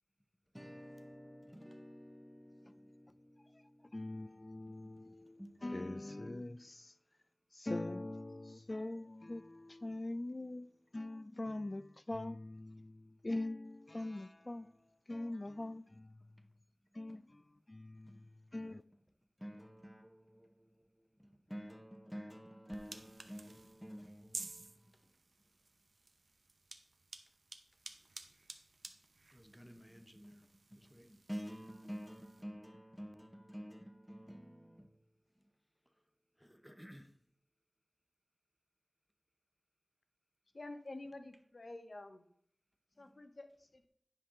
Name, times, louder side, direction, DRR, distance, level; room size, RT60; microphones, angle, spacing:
voice 1, 0.5-4.3 4.6-4.9 5.2-6.6 15.6-15.9 16.4-16.5 17.1-17.2 18.1-18.3 19.4-20.9 21.2-25.0 29.3-35.0 36.4-37.1 43.1-43.2, equal, ahead, 0.8 m, -51 dB
voice 2, 3.9-6.9 7.6-10.7 10.9-14.7 15.1-16.2 17.0-17.4 17.7-18.3 18.5-18.8, left 2 dB, 35° left, 0.3 m, -42 dB
sound 1, 22.7-32.4, right 3 dB, 75° right, 0.7 m, -53 dB
voice 3, 40.5-42.2 43.0-43.9, left 2 dB, 60° left, 0.8 m, -49 dB
9.9 x 5.4 x 3.7 m
wide cardioid pair, 70°, 0 cm